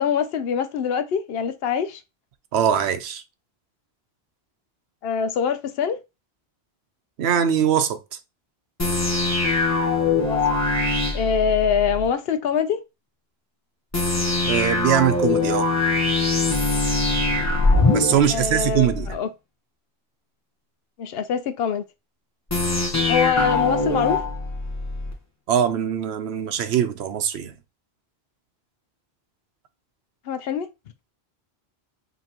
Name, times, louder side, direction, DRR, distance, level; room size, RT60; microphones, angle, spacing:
voice 1, 0.0-2.0 5.0-6.0 10.2-10.6 11.1-12.8 18.3-19.3 21.0-21.8 23.1-24.2 30.3-30.7, left 7 dB, 75° left, 0.8 m, -24 dB
voice 2, 2.5-3.2 7.2-8.0 14.4-15.7 17.9-19.2 25.5-27.5, right 9 dB, 85° right, 0.9 m, -22 dB
sound 1, 8.8-12.1 13.9-19.1 22.5-25.1, left 3 dB, 15° left, 1.0 m, -22 dB
5.3 x 2.9 x 2.9 m
omnidirectional pair, 1.0 m